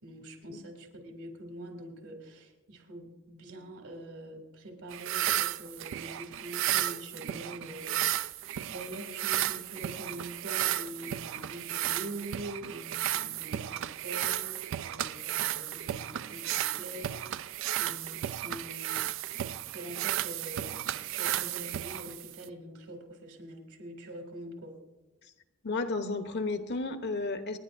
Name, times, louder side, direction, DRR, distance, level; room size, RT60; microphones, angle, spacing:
voice 1, 0.0-8.4 8.7-17.4 17.7-19.0 19.3-24.7, right 1 dB, 75° right, 2 dB, 2.8 m, -44 dB
sound 1, 4.9-22.5, right 13 dB, 60° right, 0.3 m, -33 dB
voice 2, 25.6-27.6, left 3 dB, 50° left, 8 dB, 0.9 m, -33 dB
27.5 x 10.0 x 2.6 m, 1.1 s
head